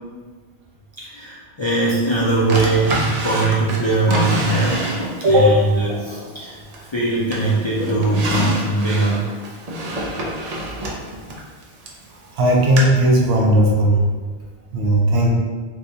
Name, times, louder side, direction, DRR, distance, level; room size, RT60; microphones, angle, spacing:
voice 1, 1.0-4.9 5.2-9.3, right 2 dB, 45° left, -7 dB, 0.3 m, -21 dB
Drawer open or close, 2.5-5.4 5.9-7.0 7.3-12.0 12.8-12.9, right 1 dB, 50° right, 0.5 m, -26 dB
voice 2, 12.4-14.0 14.7-15.3, right 1 dB, 75° right, -1 dB, 0.9 m, -15 dB
3.3 x 2.8 x 2.6 m, 1.4 s
omnidirectional pair, 1.1 m